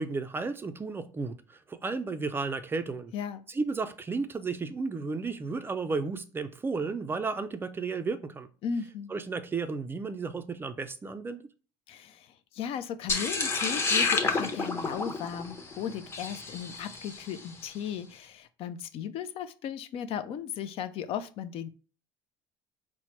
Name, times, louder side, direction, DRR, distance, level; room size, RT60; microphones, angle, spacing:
voice 1, 0.0-3.1 3.5-8.5 9.1-11.4, right 4 dB, 20° right, 0.4 m, -33 dB
voice 2, 3.1-3.4 8.6-9.1 11.9-21.7, left 8 dB, 50° left, 0.4 m, -36 dB
sound 1, 13.1-17.4, left 4 dB, 20° left, 0.8 m, -30 dB
4.4 x 2.0 x 4.4 m
supercardioid pair, 115°, 12 cm